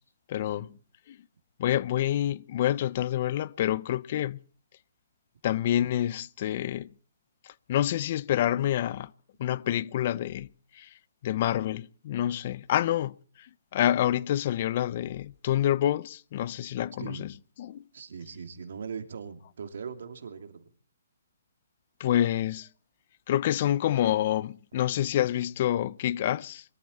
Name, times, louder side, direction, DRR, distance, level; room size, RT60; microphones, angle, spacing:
voice 1, 0.3-0.8 1.1-1.2 1.6-4.4 5.4-6.9 7.7-9.1 9.4-10.5 10.7-10.9 11.2-13.2 13.7-17.3 17.6-17.8 22.0-22.7 23.3-26.6, left 12 dB, 40° left, 0.6 m, -27 dB
voice 2, 17.9-20.7, right 6 dB, 70° right, 2.7 m, -40 dB
23.0 x 14.0 x 4.2 m
hypercardioid pair, 155°, 0 cm